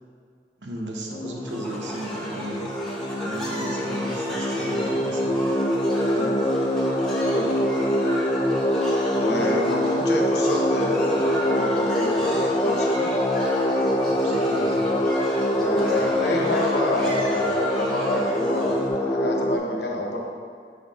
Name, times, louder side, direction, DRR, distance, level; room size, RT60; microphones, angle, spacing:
voice 1, 0.6-2.7 3.2-5.3 9.4-9.5 14.0-14.9, right 1 dB, 80° right, 0 dB, 0.9 m, -35 dB
sound 1, 1.1-19.6, equal, 20° left, 0.3 m, -24 dB
sound 2, 1.5-18.9, equal, 5° left, 0.9 m, -36 dB
voice 2, 9.2-13.1 15.6-20.2, left 2 dB, 65° left, 0 dB, 0.9 m, -28 dB
5.1 x 3.9 x 5.5 m, 2.1 s
head